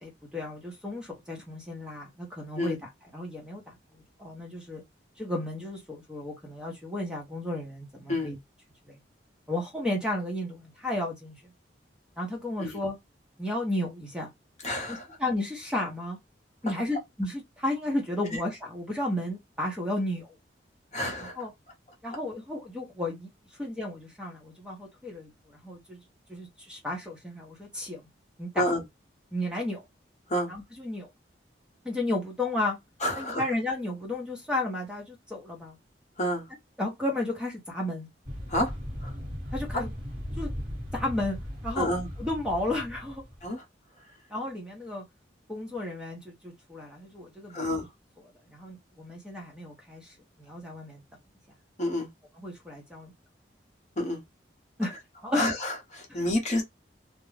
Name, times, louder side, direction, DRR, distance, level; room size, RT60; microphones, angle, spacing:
voice 1, 0.0-4.8 5.2-8.4 8.9-9.0 9.5-11.4 12.2-13.0 13.4-14.3 14.9-16.2 16.6-20.4 21.2-21.5 22.0-23.3 23.6-26.0 26.3-28.0 28.4-28.6 29.3-29.8 30.5-31.1 31.8-32.8 33.1-35.8 36.8-38.1 39.5-39.9 40.4-40.5 40.9-41.4 41.6-41.9 42.2-43.2 44.3-45.0 45.5-47.7 48.5-51.0 52.4-53.1 54.8-54.9 55.2-55.5, left 1 dB, 5° right, 0.7 m, -33 dB
voice 2, 14.6-15.2 18.3-18.4 20.9-21.5 28.5-28.9 30.3-30.5 33.0-33.4 36.2-36.5 38.5-38.8 39.0-39.2 41.8-42.1 43.4-43.6 47.5-47.9 51.8-52.1 54.0-54.2 55.3-56.6, left 1 dB, 40° left, 0.8 m, -29 dB
sound 1, 38.2-43.5, equal, 25° right, 1.4 m, -37 dB
2.4 x 2.1 x 3.0 m
head